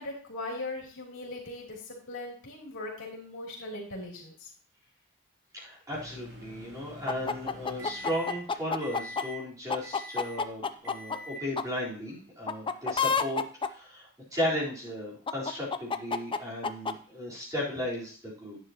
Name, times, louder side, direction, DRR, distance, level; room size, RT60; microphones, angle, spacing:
voice 1, 0.0-4.5, left 2 dB, 65° left, -2 dB, 3.2 m, -39 dB
voice 2, 5.5-18.6, left 1 dB, 15° right, -6 dB, 3.9 m, -35 dB
Microwave oven, 5.9-8.5 8.8-9.4 9.8-10.4 10.8-11.5, equal, 55° right, 3.2 m, -45 dB
sound 1, 7.1-9.2 9.7-11.2 11.6-11.7 12.5-13.7 15.3-16.9, left 5 dB, 25° left, 0.5 m, -29 dB
11.0 x 9.5 x 2.9 m, 0.43 s
head